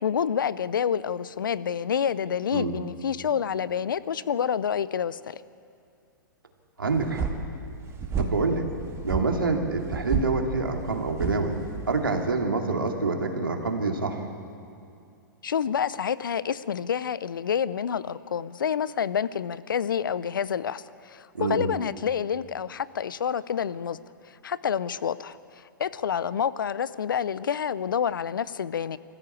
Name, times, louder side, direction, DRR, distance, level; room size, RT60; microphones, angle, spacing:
voice 1, 0.0-5.4 15.4-24.0 24.3-29.0, left 8 dB, 75° left, 17 dB, 0.6 m, -28 dB
voice 2, 6.8-7.2 8.2-8.6 9.0-11.6 11.9-14.2 21.3-21.7, right 3 dB, 85° right, 3 dB, 2.5 m, -26 dB
sound 1, 6.9-12.3, right 5 dB, 25° right, 2.3 m, -33 dB
23.0 x 15.0 x 8.4 m, 2.4 s
hypercardioid pair, 110°, 11 cm